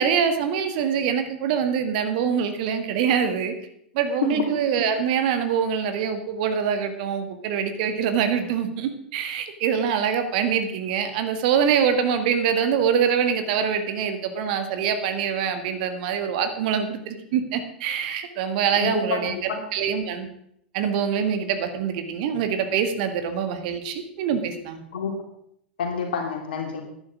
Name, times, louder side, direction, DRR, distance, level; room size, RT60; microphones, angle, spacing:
voice 1, 0.0-3.5 3.9-20.3 20.7-24.8, right 7 dB, 55° right, 8 dB, 1.7 m, -24 dB
voice 2, 18.7-19.6 24.9-25.1 25.8-26.8, left 5 dB, 65° left, 2 dB, 3.4 m, -27 dB
11.0 x 10.5 x 6.1 m, 0.71 s
figure-of-eight pair, 90°, 5 cm